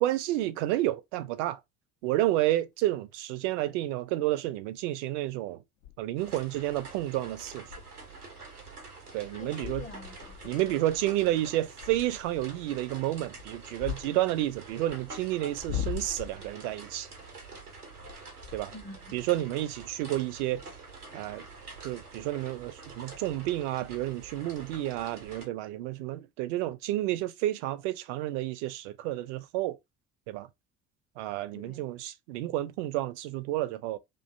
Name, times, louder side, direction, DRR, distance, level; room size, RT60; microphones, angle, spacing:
voice 1, 0.0-1.6 2.0-5.6 6.0-7.7 9.1-9.8 10.4-17.1 18.5-18.7 19.1-20.6 21.1-21.5 21.8-29.8 30.3-30.5 31.2-34.0, right 15 dB, 55° right, 0.5 m, -30 dB
sound 1, 2.1-2.2 5.8-6.1 6.5-6.8 7.2-7.3 7.6-7.9 8.4-8.6 9.1-9.2 9.6-12.5 13.2-15.0 15.5-16.6 18.0-19.0, left 9 dB, 65° left, 0.5 m, -40 dB
sound 2, 6.2-25.4, right 3 dB, 90° right, 0.7 m, -47 dB
voice 2, 9.3-10.8 18.7-19.2 31.5-31.9, left 3 dB, 20° left, 0.6 m, -47 dB
2.4 x 2.2 x 2.4 m
figure-of-eight pair, 55°, 44 cm